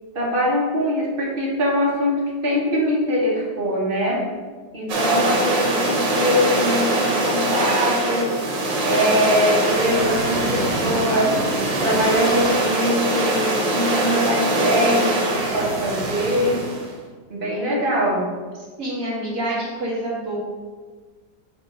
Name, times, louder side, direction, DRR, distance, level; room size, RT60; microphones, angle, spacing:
voice 1, 0.1-4.2 4.7-8.3 8.8-11.3 11.8-16.6 17.3-18.3, equal, 35° right, -4 dB, 1.2 m, -22 dB
sound 1, 4.9-16.9, right 1 dB, 85° right, 1.7 m, -23 dB
voice 2, 18.8-20.4, right 1 dB, 50° right, -6 dB, 2.2 m, -27 dB
6.3 x 2.7 x 5.4 m, 1.5 s
omnidirectional pair, 1.9 m